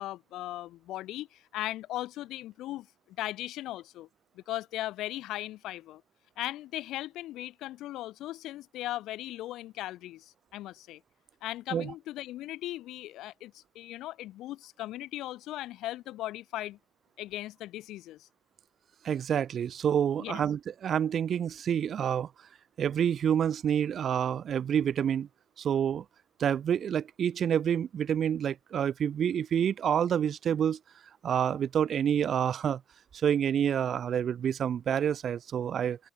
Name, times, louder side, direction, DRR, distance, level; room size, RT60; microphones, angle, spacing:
voice 1, 0.0-4.1 4.3-6.0 6.4-11.0 11.4-16.8 17.2-18.3 20.2-20.4, left 15 dB, 90° left, 3.8 m, -38 dB
voice 2, 19.0-22.3 22.8-25.3 25.6-26.0 26.4-30.8 31.2-32.8 33.1-36.0, right 8 dB, 60° right, 2.2 m, -28 dB
open air
cardioid pair, 90°, 0 cm